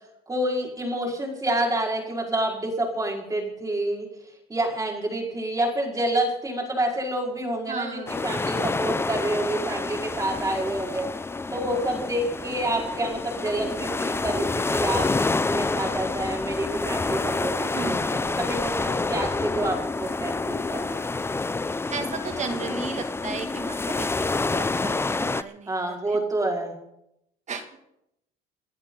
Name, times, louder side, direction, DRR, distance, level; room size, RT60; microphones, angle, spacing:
voice 1, 0.3-4.1 4.5-11.1 11.5-21.2 25.7-26.7, right 1 dB, 20° right, 0 dB, 5.1 m, -28 dB
voice 2, 7.7-8.2 17.7-18.0 21.9-26.2 27.5-27.7, right 5 dB, 40° right, 6 dB, 2.5 m, -35 dB
sound 1, 8.1-25.4, left 3 dB, 15° left, 0.6 m, -28 dB
29.0 x 11.0 x 4.0 m, 0.81 s
cardioid pair, 100°, 18 cm